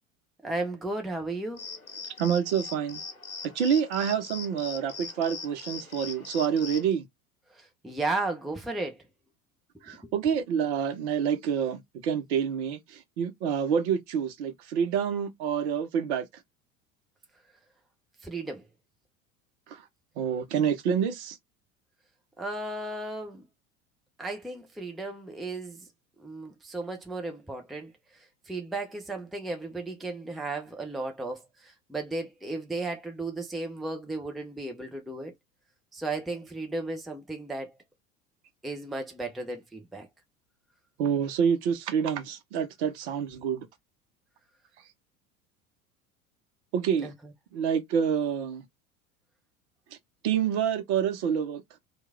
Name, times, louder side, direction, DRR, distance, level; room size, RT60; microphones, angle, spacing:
voice 1, 0.4-1.6 7.5-9.0 10.0-10.1 18.2-18.6 22.4-23.4 24.2-25.9 26.2-27.9 28.5-35.3 35.9-37.7 38.6-40.1 47.0-47.1, right 2 dB, ahead, 0.5 m, -34 dB
sound 1, 1.6-6.9, left 3 dB, 90° left, 0.8 m, -41 dB
voice 2, 2.2-3.0 3.4-7.0 9.8-16.3 19.7-19.8 20.2-21.4 41.0-43.7 46.7-47.1 47.5-48.6 50.2-51.6, right 7 dB, 55° right, 0.8 m, -27 dB
3.0 x 2.4 x 3.4 m
figure-of-eight pair, 75°, 41 cm